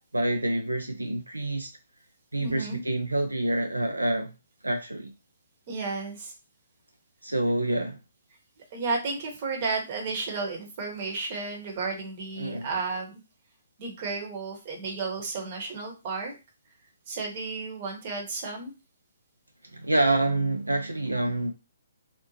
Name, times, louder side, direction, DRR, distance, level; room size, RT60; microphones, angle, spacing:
voice 1, 0.1-1.7 2.3-4.3 4.6-5.1 7.2-8.0 12.4-12.7 19.7-21.5, right 1 dB, 80° right, 0.3 m, -27 dB
voice 2, 2.4-2.8 5.7-6.3 8.7-13.2 13.8-16.3 17.1-18.7, right 4 dB, 35° right, 0.9 m, -33 dB
2.7 x 2.0 x 2.7 m
figure-of-eight pair, 130°, 0 cm